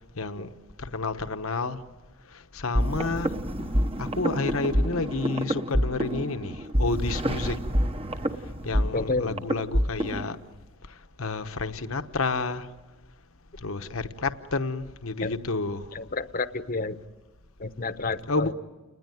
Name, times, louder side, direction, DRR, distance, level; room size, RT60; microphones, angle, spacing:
voice 1, 0.2-0.5 0.8-1.8 2.3-3.3 4.0-7.6 8.6-10.4 11.2-12.7 13.6-15.9 18.3-18.5, left 3 dB, 65° left, 1.1 m, -30 dB
sound 1, 2.8-10.3, equal, 25° right, 1.0 m, -27 dB
voice 2, 8.9-9.4 15.2-15.3 15.9-17.0 17.6-18.5, left 3 dB, 40° left, 1.0 m, -30 dB
29.5 x 20.5 x 9.3 m
head